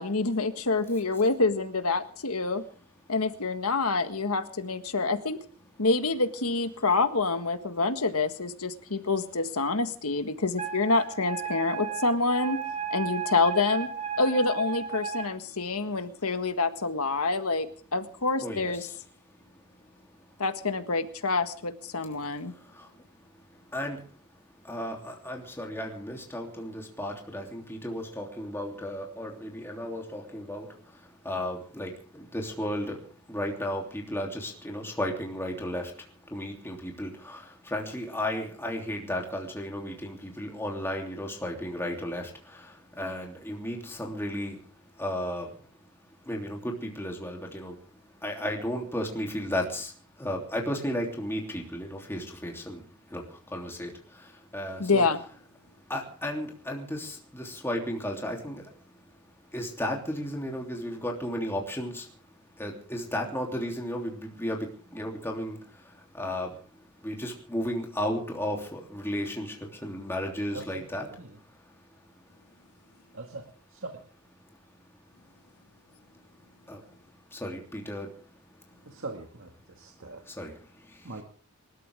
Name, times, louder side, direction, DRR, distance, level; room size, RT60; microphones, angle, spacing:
voice 1, 0.0-2.6 3.1-5.4 5.8-12.6 12.9-13.9 14.2-18.9 20.4-22.5 54.8-55.2, left 3 dB, 75° left, 8 dB, 1.7 m, -27 dB
Wind instrument woodwind instrument, 10.6-15.3, right 7 dB, 30° right, 3.1 m, -34 dB
voice 2, 18.4-19.0 19.4-20.4 22.5-24.2 24.6-55.0 55.6-59.2 59.5-71.2 71.5-72.3 74.5-74.8 76.0-76.1 76.6-77.0 77.3-78.9 79.9-81.2, left 1 dB, 10° left, 0 dB, 3.1 m, -35 dB
voice 3, 78.9-79.5 79.8-80.2 81.0-81.2, right 3 dB, 60° right, 3 dB, 2.0 m, -40 dB
27.0 x 13.0 x 3.6 m, 0.43 s
head